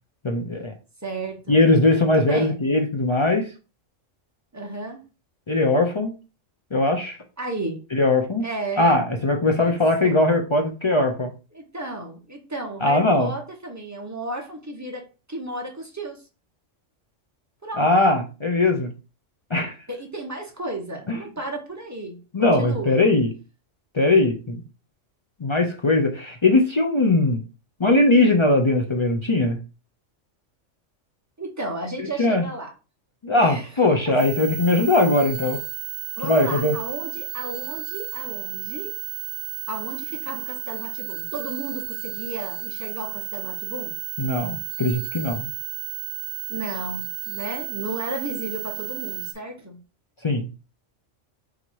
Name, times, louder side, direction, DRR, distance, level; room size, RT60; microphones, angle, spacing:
voice 1, 0.2-0.7 1.5-3.5 5.5-6.1 6.7-7.2 7.9-8.5 8.8-11.3 12.8-13.3 17.8-18.9 19.5-19.7 21.1-21.2 22.3-23.3 23.9-24.6 25.4-27.4 27.8-29.6 32.0-32.4 33.2-35.6 36.2-36.8 44.2-45.5 50.2-50.5, left 2 dB, 45° left, 2 dB, 0.3 m, -20 dB
voice 2, 1.0-1.7 1.9-2.6 4.5-5.0 7.4-7.8 8.4-9.0 9.5-10.2 11.5-16.2 17.6-18.0 19.9-23.0 31.4-32.7 33.3-33.7 34.0-34.3 36.1-38.9 39.7-44.0 46.5-49.8, right 2 dB, 15° right, 1 dB, 0.9 m, -34 dB
sound 1, 34.2-49.3, right 17 dB, 60° right, 0.7 m, -33 dB
4.0 x 2.9 x 4.5 m, 0.33 s
omnidirectional pair, 1.3 m